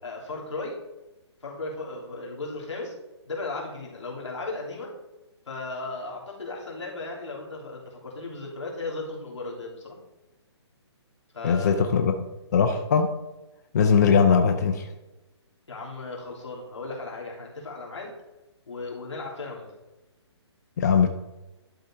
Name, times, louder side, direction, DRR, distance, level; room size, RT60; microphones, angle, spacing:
voice 1, 0.0-0.8 1.4-2.9 3.3-4.9 5.5-10.0 11.3-12.0 15.7-18.1 18.7-19.6, left 3 dB, 90° left, -2 dB, 3.2 m, -36 dB
voice 2, 11.4-12.1 12.5-13.1 13.7-14.8 20.8-21.1, left 6 dB, 35° left, 6 dB, 0.6 m, -20 dB
11.5 x 4.0 x 4.5 m, 1.0 s
hypercardioid pair, 165°, 15 cm